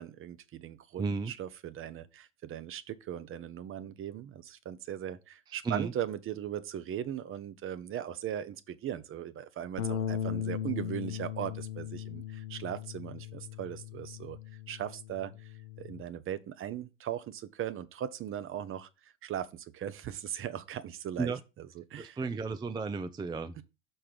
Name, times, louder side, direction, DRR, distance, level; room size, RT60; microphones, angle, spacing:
voice 1, 0.0-14.4 14.7-22.2, right 10 dB, 35° right, 0.8 m, -39 dB
voice 2, 1.0-1.3 5.6-5.9 21.2-21.4 22.0-23.6, right 4 dB, 10° right, 0.5 m, -33 dB
Bass guitar, 9.8-16.0, left 9 dB, 85° left, 0.8 m, -38 dB
5.8 x 4.4 x 5.0 m
hypercardioid pair, 85°, 37 cm